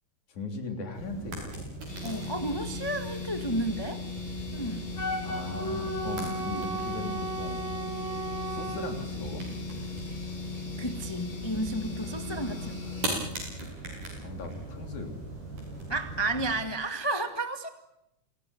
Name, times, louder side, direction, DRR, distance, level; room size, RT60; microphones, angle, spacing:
voice 1, 0.3-1.7 5.2-7.6 8.5-9.4 12.0-13.2 14.2-15.1, left 3 dB, 65° left, 5 dB, 4.8 m, -39 dB
sound 1, 0.9-16.6, right 2 dB, 75° right, 9.0 m, -40 dB
sound 2, 1.9-13.2, left 5 dB, 80° left, 8.4 m, -39 dB
voice 2, 2.0-4.0 4.5-4.9 10.8-12.9 15.9-17.7, right 1 dB, 20° left, 7 dB, 0.7 m, -32 dB
Wind instrument woodwind instrument, 4.9-8.9, right 2 dB, 35° left, 8.9 m, -35 dB
29.0 x 18.5 x 9.9 m, 0.85 s
omnidirectional pair, 3.8 m